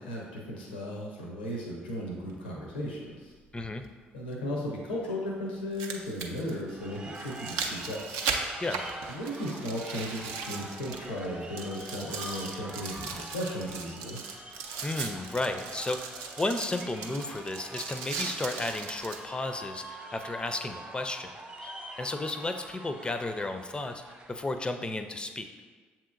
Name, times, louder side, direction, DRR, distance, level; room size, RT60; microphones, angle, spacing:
voice 1, 0.0-3.3 4.1-8.0 9.1-14.2, left 1 dB, 90° left, -1 dB, 0.6 m, -36 dB
sound 1, 2.3-2.4 4.3-4.4 5.5-11.3 11.6-19.2 19.8-19.9, right 5 dB, 75° right, 0.4 m, -38 dB
voice 2, 3.5-3.9 8.6-8.9 14.8-21.3 21.6-25.5, left 2 dB, 20° left, 8 dB, 0.4 m, -33 dB
sound 2, 6.7-24.7, right 2 dB, 25° right, 0.8 m, -45 dB
7.1 x 2.9 x 2.5 m, 1.5 s
hypercardioid pair, 50°, 5 cm